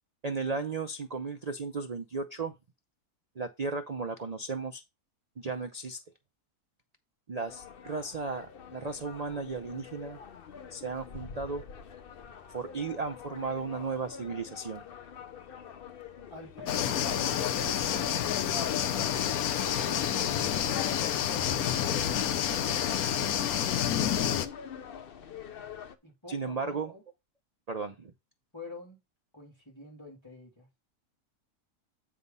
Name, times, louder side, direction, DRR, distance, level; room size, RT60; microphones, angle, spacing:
voice 1, 0.2-2.5 3.4-4.8 5.4-6.0 7.3-10.2 10.7-11.6 12.5-14.8 26.3-26.9 27.7-28.1, right 4 dB, 80° right, 0.3 m, -35 dB
sound 1, 7.5-26.0, left 8 dB, 55° left, 0.6 m, -46 dB
voice 2, 16.3-19.0 19.9-20.5 26.0-27.0 28.5-29.0 29.3-30.7, left 2 dB, 15° left, 2.9 m, -48 dB
sound 2, 16.7-24.5, left 10 dB, 75° left, 1.1 m, -29 dB
8.2 x 3.5 x 5.4 m
omnidirectional pair, 1.6 m